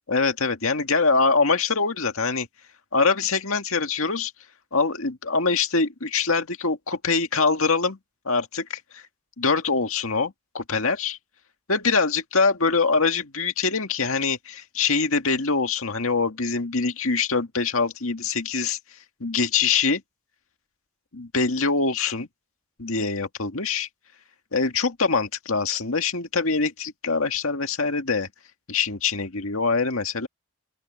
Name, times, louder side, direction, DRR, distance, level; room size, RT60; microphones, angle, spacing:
voice 1, 0.1-2.5 2.9-4.3 4.7-8.0 8.2-9.0 9.4-11.2 11.7-18.8 19.2-20.0 21.1-22.3 22.8-23.9 24.5-28.3 28.7-30.3, left 4 dB, 70° left, 2.0 m, -24 dB
open air
head